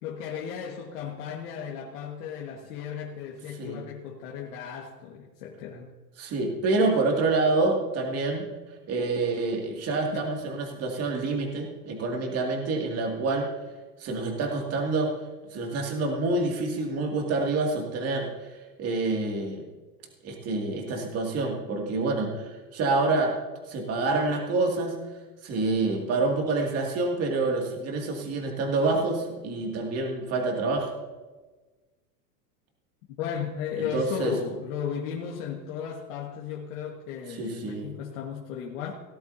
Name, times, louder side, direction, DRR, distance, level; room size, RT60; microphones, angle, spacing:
voice 1, 0.0-5.9 6.2-6.3 10.1-10.3 33.2-38.9, left 7 dB, 55° left, -2 dB, 1.8 m, -35 dB
voice 2, 6.2-8.4 8.9-13.5 14.0-15.1 15.4-18.3 18.8-19.6 20.2-23.3 23.7-25.0 25.4-30.9 33.8-34.3 37.3-37.9, right 3 dB, 30° right, 1 dB, 2.5 m, -27 dB
18.5 x 11.5 x 2.8 m, 1.3 s
supercardioid pair, 135°, 48 cm